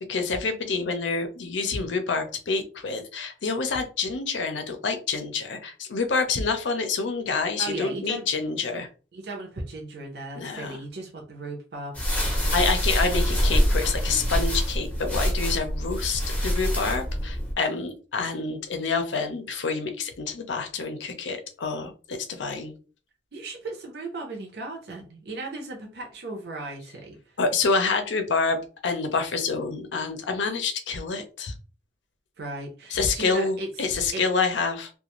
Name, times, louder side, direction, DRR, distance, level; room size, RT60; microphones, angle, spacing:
voice 1, 0.1-8.9 10.4-10.8 12.1-12.2 12.5-22.7 27.4-31.5 32.9-34.9, left 4 dB, 80° left, 7 dB, 0.6 m, -27 dB
voice 2, 7.6-8.3 9.1-12.4 23.3-27.3 32.4-33.7 34.1-34.2, right 2 dB, 60° right, 1 dB, 0.6 m, -36 dB
sound 1, 11.9-17.5, equal, 10° left, 0.6 m, -25 dB
2.5 x 2.2 x 3.0 m, 0.36 s
head